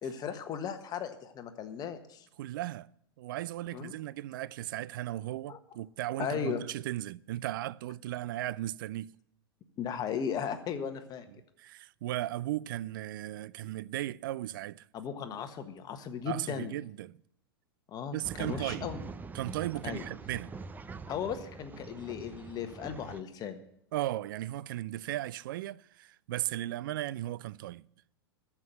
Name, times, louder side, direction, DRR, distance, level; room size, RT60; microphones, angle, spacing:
voice 1, 0.0-2.3 3.7-3.9 5.5-5.6 6.2-6.6 9.8-11.3 13.6-13.7 14.9-16.7 17.9-19.0 19.8-20.0 21.1-23.6, left 7 dB, 30° left, 1.5 m, -36 dB
voice 2, 2.4-2.9 3.2-9.1 11.6-14.9 16.2-17.2 18.1-18.9 19.3-20.5 23.9-27.9, right 14 dB, 55° right, 0.4 m, -36 dB
Male speech man speaking / Chatter / Rattle, 18.2-23.2, right 4 dB, 15° right, 0.6 m, -44 dB
14.0 x 6.1 x 9.2 m
hypercardioid pair, 100°, 13 cm